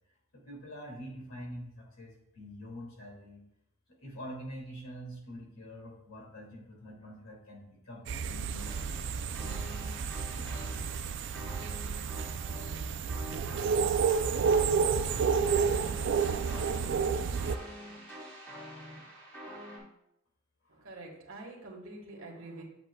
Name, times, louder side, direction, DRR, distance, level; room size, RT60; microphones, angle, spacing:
voice 1, 0.3-3.4 3.9-8.8 9.4-9.8 10.3-10.5 20.6-20.8, equal, 75° left, -1 dB, 2.3 m, -45 dB
sound 1, 8.1-17.6, right 6 dB, 60° right, 0.4 m, -30 dB
sound 2, 8.6-19.8, equal, 10° left, 2.9 m, -46 dB
voice 2, 20.7-22.6, right 2 dB, 75° right, 0 dB, 1.6 m, -46 dB
7.8 x 7.5 x 2.3 m, 0.79 s
head